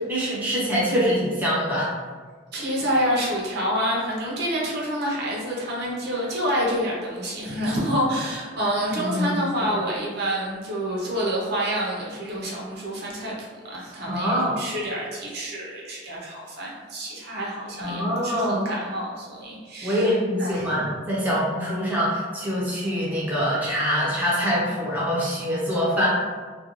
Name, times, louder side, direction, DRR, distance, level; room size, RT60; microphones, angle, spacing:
voice 1, 0.1-1.9 9.0-9.4 14.1-14.6 17.8-18.7 19.8-26.1, equal, 10° right, -7 dB, 0.5 m, -24 dB
voice 2, 2.5-20.9, equal, 55° right, -4 dB, 0.6 m, -28 dB
2.4 x 2.2 x 2.9 m, 1.5 s
head